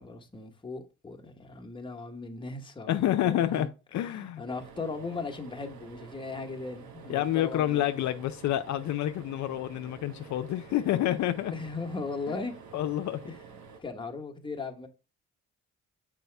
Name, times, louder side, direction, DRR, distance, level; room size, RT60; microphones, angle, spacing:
voice 1, 0.0-3.7 4.0-8.0 9.4-9.5 11.5-12.5 13.3-13.4 13.8-14.9, left 3 dB, 15° left, 1.2 m, -38 dB
voice 2, 2.9-3.7 3.9-4.4 7.1-11.5 12.3-12.4 12.7-13.2, left 12 dB, 70° left, 0.5 m, -28 dB
sound 1, 4.5-13.8, right 5 dB, 70° right, 1.1 m, -49 dB
6.8 x 4.9 x 3.3 m
cardioid pair, 90°, 30 cm